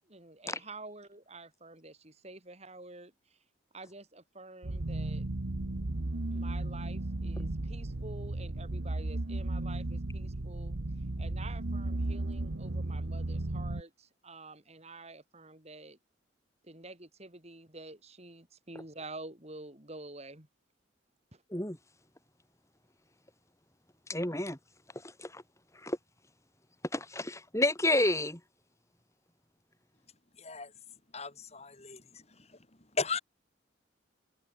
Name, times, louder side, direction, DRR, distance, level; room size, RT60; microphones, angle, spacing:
voice 1, 0.1-3.4 3.7-5.3 6.3-10.8 11.2-16.0 16.6-20.5 21.3-21.4, right 2 dB, 35° right, 3.9 m, -48 dB
sound 1, 4.6-13.8, right 2 dB, 85° right, 1.3 m, -35 dB
voice 2, 24.1-24.6 24.9-25.4 25.7-26.0 26.9-28.4, left 1 dB, 15° left, 4.2 m, -30 dB
voice 3, 30.4-30.7 31.1-32.6 32.9-33.2, left 4 dB, 35° left, 4.0 m, -37 dB
head